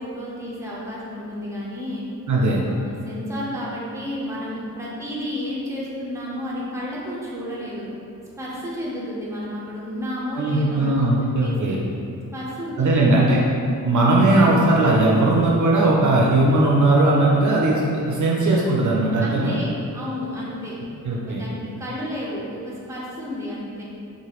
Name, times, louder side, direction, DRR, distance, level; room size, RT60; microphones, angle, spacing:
voice 1, 0.0-2.0 2.6-7.9 8.4-11.0 11.4-11.8 12.3-13.4 19.2-20.8 21.2-23.8, left 1 dB, 10° right, -7 dB, 0.6 m, -32 dB
voice 2, 2.3-2.6 10.3-11.8 12.8-13.4 13.8-19.5 21.0-21.4, right 2 dB, 55° right, -4 dB, 0.5 m, -18 dB
2.9 x 2.4 x 2.9 m, 2.6 s
wide cardioid pair, 80°, 36 cm